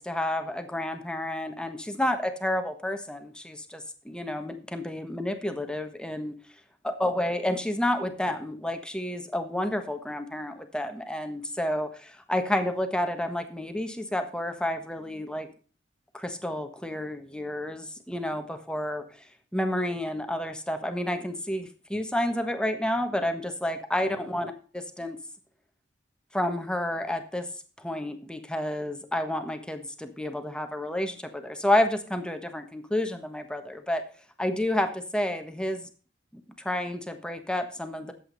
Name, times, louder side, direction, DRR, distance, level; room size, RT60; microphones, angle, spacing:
voice 1, 0.0-6.3 6.8-15.5 16.1-19.0 19.5-25.2 26.3-27.4 27.8-34.0 34.4-35.9 36.3-38.1, left 1 dB, 5° left, 7 dB, 1.4 m, -30 dB
11.5 x 8.2 x 5.4 m, 0.39 s
head